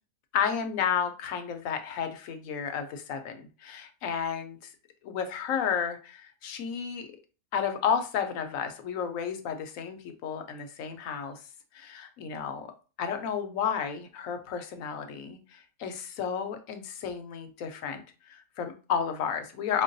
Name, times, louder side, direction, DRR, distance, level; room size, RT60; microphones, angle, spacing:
voice 1, 0.3-4.7 5.0-7.1 7.5-11.4 11.7-12.7 13.0-19.8, left 7 dB, 75° left, 7 dB, 1.0 m, -32 dB
5.1 x 2.2 x 2.6 m, 0.34 s
omnidirectional pair, 1.5 m